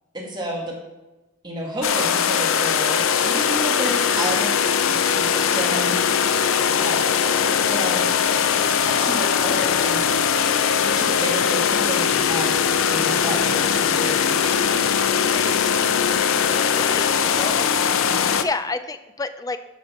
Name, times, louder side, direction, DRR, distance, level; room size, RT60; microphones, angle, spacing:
voice 1, 0.1-0.7 1.4-4.6 4.9-6.0 6.8-7.2 7.7-8.1 8.8-10.0 10.8-12.6 12.9-14.7 18.0-18.3, equal, 20° right, -4 dB, 2.0 m, -30 dB
sound 1, 1.8-18.4, left 7 dB, 75° left, 0.5 m, -20 dB
voice 2, 15.2-15.7 16.5-18.0 18.3-19.6, left 3 dB, 15° left, 10 dB, 0.4 m, -31 dB
11.0 x 4.7 x 5.7 m, 1.1 s
head